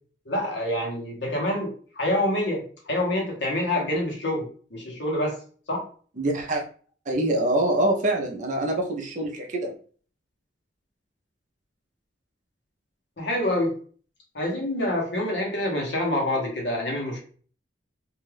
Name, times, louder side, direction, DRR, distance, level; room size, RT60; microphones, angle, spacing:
voice 1, 0.3-5.4 5.7-5.8 13.2-13.7 14.3-17.2, left 1 dB, 70° left, -1 dB, 1.1 m, -26 dB
voice 2, 6.2-6.6 7.1-9.7, right 1 dB, 40° right, 1 dB, 0.5 m, -25 dB
2.6 x 2.3 x 3.3 m, 0.43 s
head